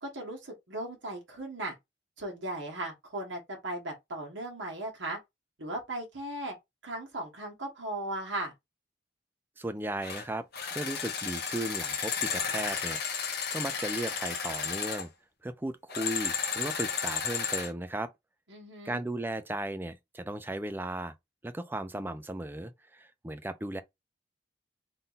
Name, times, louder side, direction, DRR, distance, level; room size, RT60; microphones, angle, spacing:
voice 1, 0.0-1.7 2.2-5.2 5.6-6.5 6.8-8.5 18.5-19.0, right 1 dB, 80° right, 1.4 m, -37 dB
voice 2, 9.6-10.5 10.7-13.0 13.5-15.1 15.4-18.1 18.8-21.1 21.4-23.8, right 1 dB, 10° right, 0.4 m, -36 dB
sound 1, 10.0-10.2 10.5-15.1 15.9-17.7, left 6 dB, 55° left, 1.1 m, -33 dB
3.7 x 2.7 x 4.0 m
head